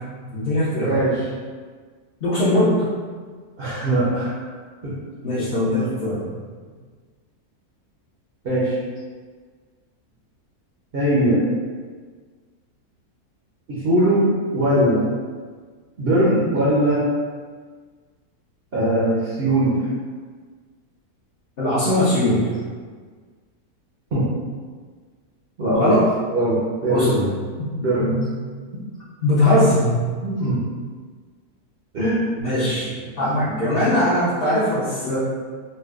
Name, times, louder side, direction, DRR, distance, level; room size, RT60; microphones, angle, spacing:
voice 1, 0.2-1.0 2.2-2.8 5.2-6.3 21.6-22.5 25.7-26.1 26.9-27.3 27.6-27.7 28.0-28.3 29.2-30.0 32.4-35.2, left 1 dB, 45° left, -13 dB, 0.9 m, -20 dB
voice 2, 0.8-1.1 3.6-4.3 4.8-4.9 8.4-8.7 10.9-11.4 13.7-15.0 16.0-17.0 18.7-19.8 24.1-24.2 25.6-26.0 26.3-27.1 27.8-28.1 30.2-30.6 31.9-32.3 33.5-33.6, right 1 dB, 50° right, -9 dB, 0.7 m, -20 dB
4.1 x 2.2 x 2.4 m, 1.5 s
omnidirectional pair, 1.6 m